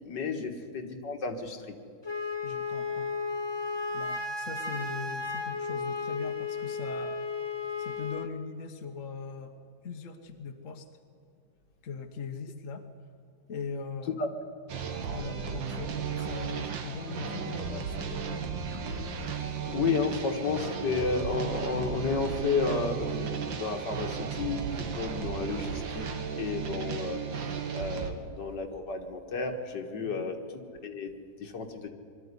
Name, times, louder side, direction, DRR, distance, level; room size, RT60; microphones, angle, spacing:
voice 1, 0.1-1.6 14.2-14.3 19.7-26.1 26.4-27.2 27.7-30.4 30.8-31.1 31.4-31.9, left 4 dB, 65° left, 4 dB, 2.2 m, -32 dB
Wind instrument woodwind instrument, 2.0-8.3, left 4 dB, 30° left, 0.5 m, -34 dB
voice 2, 2.4-3.1 3.9-7.2 7.8-9.5 9.8-10.9 11.8-12.8 13.5-14.2 15.1-18.4 30.0-30.3, left 5 dB, 50° left, 5 dB, 1.3 m, -40 dB
sound 1, 14.7-28.1, right 6 dB, 85° right, 2.1 m, -35 dB
22.0 x 13.0 x 9.7 m, 2.4 s
omnidirectional pair, 2.0 m